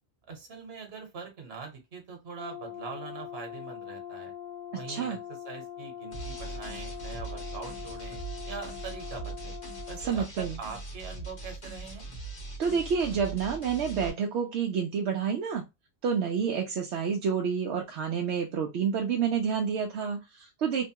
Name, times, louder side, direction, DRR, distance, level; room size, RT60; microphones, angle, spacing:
voice 1, 0.3-4.3 4.7-8.2 8.5-9.5 9.9-12.0, right 5 dB, 65° right, 3 dB, 1.3 m, -43 dB
Brass instrument, 2.4-10.1, left 10 dB, 60° left, 0.5 m, -42 dB
voice 2, 4.9-5.2 10.0-10.6 12.6-15.6 16.0-20.8, right 6 dB, 80° right, 1 dB, 0.9 m, -29 dB
sound 1, 6.1-14.1, right 3 dB, 40° left, 1.1 m, -40 dB
3.0 x 2.2 x 2.8 m, 0.22 s
omnidirectional pair, 1.1 m